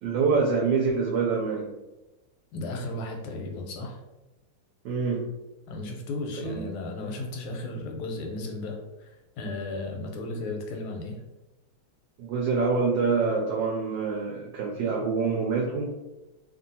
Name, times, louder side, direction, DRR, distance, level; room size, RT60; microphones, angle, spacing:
voice 1, 0.0-1.7 4.8-5.2 6.4-6.6 12.2-15.9, right 4 dB, 75° right, -2 dB, 1.1 m, -26 dB
voice 2, 2.5-4.0 5.7-11.2, left 2 dB, 90° left, 2 dB, 1.5 m, -35 dB
3.0 x 2.6 x 2.6 m, 1.0 s
omnidirectional pair, 2.3 m